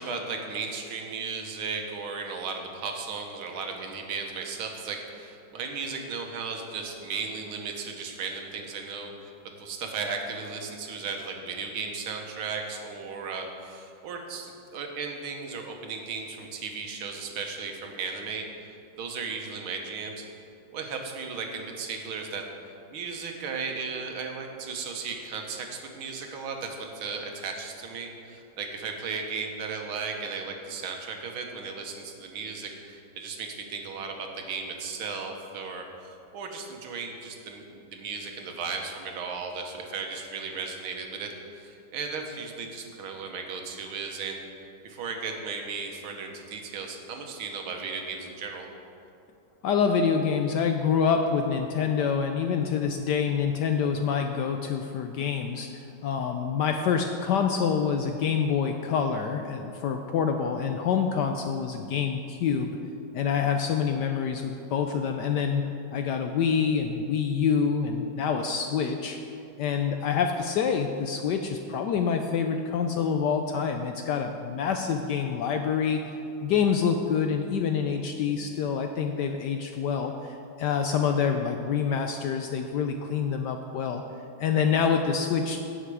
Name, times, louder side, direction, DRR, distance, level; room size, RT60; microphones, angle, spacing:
voice 1, 0.0-20.3 20.7-22.4 22.9-44.4 44.8-48.7, right 5 dB, 80° right, 3 dB, 1.9 m, -36 dB
voice 2, 49.6-62.8 63.1-65.6 65.9-69.2 69.6-76.0 76.4-84.0 84.4-85.6, left 6 dB, 75° left, 5 dB, 1.0 m, -26 dB
16.5 x 5.8 x 4.8 m, 2.7 s
omnidirectional pair, 2.3 m